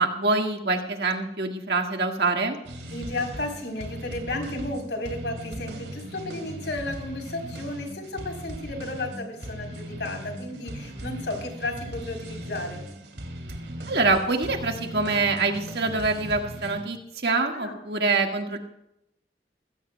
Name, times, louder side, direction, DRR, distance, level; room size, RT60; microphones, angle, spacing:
voice 1, 0.0-2.6 13.9-18.6, right 3 dB, 65° right, 3 dB, 1.8 m, -25 dB
sound 1, 2.6-16.8, equal, 80° right, 2.9 m, -38 dB
voice 2, 2.9-12.8 17.5-17.8, left 2 dB, 80° left, 2 dB, 3.9 m, -33 dB
21.5 x 16.5 x 2.3 m, 0.83 s
head